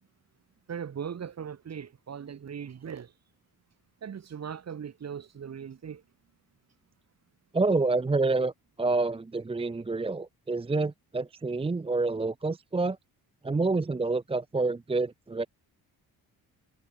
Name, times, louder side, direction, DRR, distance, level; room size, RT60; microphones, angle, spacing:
voice 1, 0.7-3.1 4.0-6.0, right 7 dB, 45° right, 2.9 m, -39 dB
voice 2, 7.5-8.5 8.8-13.0 13.4-15.5, right 3 dB, 15° right, 0.8 m, -28 dB
cardioid pair, 150°, 37 cm